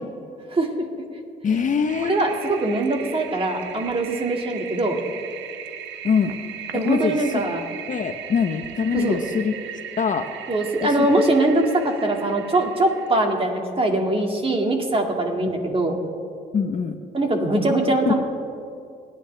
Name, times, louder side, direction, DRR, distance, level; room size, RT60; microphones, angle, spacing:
voice 1, 1.4-2.2 6.0-6.3 6.7-7.4 7.9-9.5 10.0-10.3 10.8-11.1 15.4-15.5 16.5-17.0 18.1-18.2, left 6 dB, 45° left, 7 dB, 0.9 m, -23 dB
Toilet flush, 1.9-13.4, right 9 dB, 80° right, 0.9 m, -38 dB
voice 2, 2.0-5.0 6.7-7.6 8.9-9.2 10.5-16.0 17.1-18.2, right 2 dB, 30° right, 2 dB, 2.3 m, -22 dB
27.0 x 10.0 x 3.4 m, 2.4 s
supercardioid pair, 75°, 19 cm